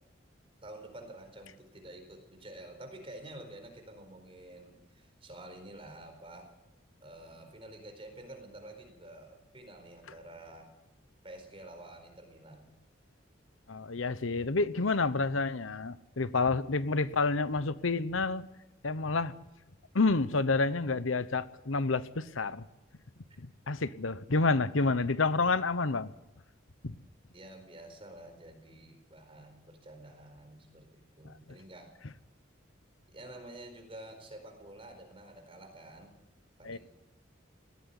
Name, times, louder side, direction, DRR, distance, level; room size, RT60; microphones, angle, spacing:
voice 1, 0.6-6.5 7.0-10.7 11.2-12.7 27.3-31.9 33.1-36.2 36.6-36.8, right 1 dB, 30° right, 5 dB, 4.4 m, -49 dB
voice 2, 13.7-18.5 18.8-19.3 19.9-22.7 23.4-26.1 26.8-26.9 31.2-31.3 36.6-36.8, left 3 dB, 90° left, 15 dB, 1.0 m, -29 dB
19.0 x 16.0 x 9.6 m, 0.95 s
head